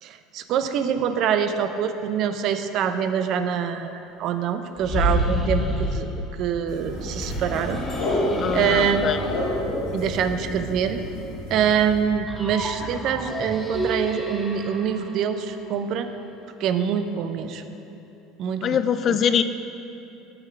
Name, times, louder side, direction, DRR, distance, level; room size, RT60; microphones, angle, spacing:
voice 1, 0.0-6.1 6.4-7.8 8.5-9.2 9.9-11.0 11.5-16.1 16.6-17.6 18.4-18.8 19.1-19.2, right 8 dB, 60° right, 9 dB, 0.5 m, -25 dB
sound 1, 4.8-6.0 6.9-9.5, equal, 15° left, 1.4 m, -27 dB
sound 2, 6.7-12.0, left 1 dB, 75° left, 1.8 m, -30 dB
voice 2, 8.4-9.2 18.6-19.4, left 8 dB, 45° left, 11 dB, 0.3 m, -23 dB
sound 3, 12.3-16.2, right 1 dB, 5° right, 0.7 m, -32 dB
8.0 x 3.7 x 6.6 m, 2.9 s
supercardioid pair, 90°, 0 cm